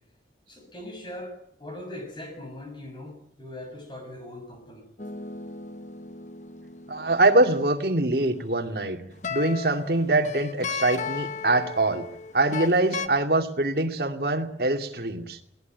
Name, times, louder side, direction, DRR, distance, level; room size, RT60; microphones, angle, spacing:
voice 1, 0.5-4.9, left 1 dB, 25° left, 5 dB, 6.7 m, -40 dB
sound 1, 5.0-7.6 9.1-13.1, left 5 dB, 40° left, 1.2 m, -35 dB
voice 2, 6.9-9.0 9.3-12.1 12.3-15.4, right 2 dB, 60° right, 5 dB, 2.5 m, -23 dB
21.5 x 17.5 x 9.4 m, 0.63 s
head